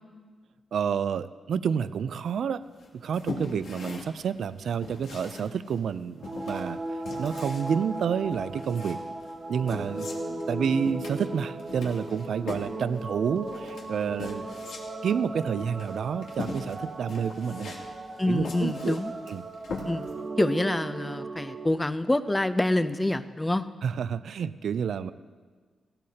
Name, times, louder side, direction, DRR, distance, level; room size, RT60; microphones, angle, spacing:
voice 1, 0.7-2.6 2.9-6.2 6.4-6.8 7.2-9.0 9.5-10.1 10.5-14.5 15.0-17.8 18.3-19.0 19.3-19.4 23.8-25.1, right 7 dB, 65° right, 14 dB, 0.4 m, -29 dB
sound 1, 2.8-20.3, left 3 dB, 85° left, 2.8 m, -41 dB
sound 2, 6.2-21.7, right 2 dB, 35° right, 1.4 m, -37 dB
voice 2, 18.2-19.1 19.8-20.1 20.4-23.7, left 1 dB, 10° left, 11 dB, 0.6 m, -26 dB
18.5 x 18.0 x 2.9 m, 1.5 s
wide cardioid pair, 135°, 0 cm